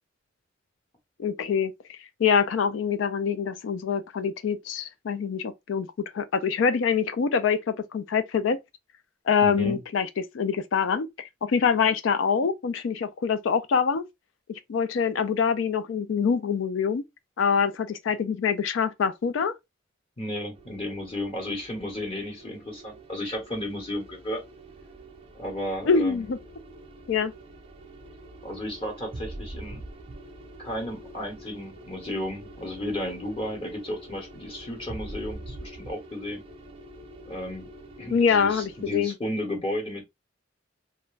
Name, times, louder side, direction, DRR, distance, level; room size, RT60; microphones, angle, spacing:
voice 1, 1.2-8.6 9.3-14.0 14.5-17.0 17.4-19.5 25.9-26.4 27.1-27.3 38.1-39.2, left 6 dB, 75° left, 0.4 m, -25 dB
voice 2, 9.4-9.8 20.2-24.4 25.3-26.3 28.4-29.8 30.6-36.4 37.3-37.7 38.0-40.1, left 1 dB, 30° left, 1.0 m, -33 dB
sound 1, 20.5-38.9, right 1 dB, 30° right, 0.5 m, -45 dB
2.4 x 2.1 x 3.1 m
head